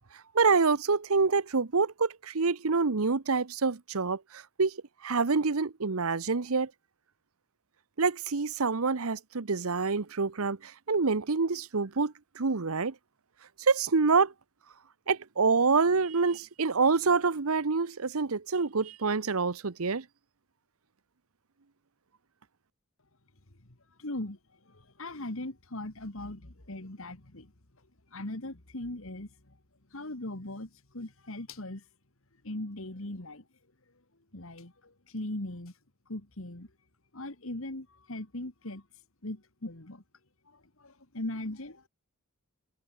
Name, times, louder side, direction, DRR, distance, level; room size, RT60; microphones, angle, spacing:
voice 1, 0.3-4.8 5.0-6.7 8.0-12.9 13.6-14.3 15.1-20.0, right 4 dB, 75° right, 0.9 m, -27 dB
voice 2, 23.6-27.5 28.1-29.6 29.9-31.8 32.4-33.4 34.3-35.7 36.1-36.7 37.1-38.8 39.2-40.0 40.5-41.9, left 1 dB, 65° left, 2.4 m, -39 dB
head